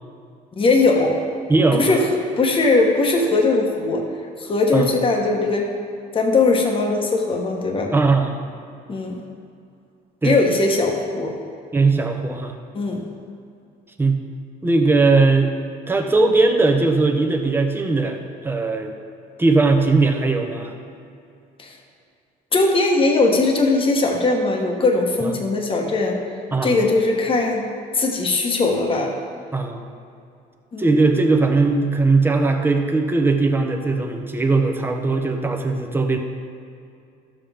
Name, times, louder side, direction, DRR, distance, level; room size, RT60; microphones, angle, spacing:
voice 1, 0.6-1.2 1.7-2.1 2.4-4.1 4.4-5.7 6.1-7.9 8.9-9.2 10.2-11.3 12.7-13.1 21.6-21.7 22.5-26.2 26.6-27.7 27.9-29.1 30.7-30.9, left 3 dB, 30° left, 1 dB, 1.2 m, -19 dB
voice 2, 1.5-2.0 4.7-4.9 7.9-8.4 10.2-10.4 11.7-12.5 14.0-14.2 14.6-15.5 15.9-18.9 19.4-20.7 25.2-25.3 26.5-26.8 29.5-29.8 30.8-36.2, right 3 dB, 15° right, 4 dB, 0.9 m, -19 dB
12.5 x 7.4 x 3.5 m, 2.5 s
cardioid pair, 110°, 17 cm